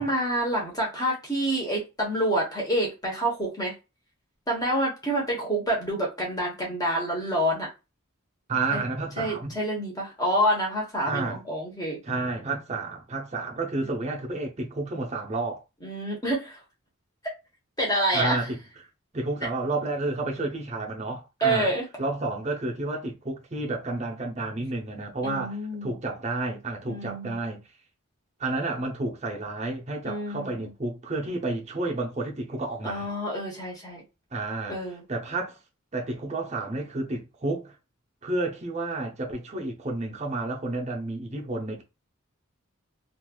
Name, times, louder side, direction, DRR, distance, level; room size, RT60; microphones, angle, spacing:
voice 1, 0.0-3.7 4.5-7.7 8.7-8.8 9.2-12.0 15.8-16.6 17.8-18.4 21.4-21.8 25.2-26.0 26.9-27.4 30.0-30.6 32.8-34.0 34.7-35.0, right 1 dB, 15° left, 1.0 m, -27 dB
voice 2, 8.5-9.6 11.1-11.4 12.0-15.6 18.1-18.6 19.1-21.7 22.0-27.6 28.4-33.1 34.3-34.8 35.1-35.6 35.9-37.7 38.2-41.8, right 2 dB, 30° right, 0.6 m, -31 dB
3.2 x 2.5 x 2.3 m
head